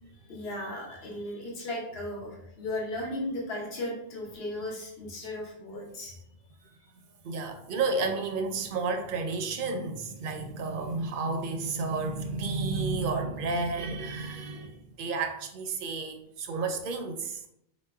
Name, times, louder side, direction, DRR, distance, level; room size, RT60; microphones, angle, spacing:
voice 1, 0.1-6.1 14.5-14.6, left 1 dB, 70° left, 1.1 m, -36 dB
voice 2, 7.2-17.4, right 3 dB, 60° right, 0.7 m, -31 dB
4.1 x 3.0 x 2.2 m
omnidirectional pair, 1.1 m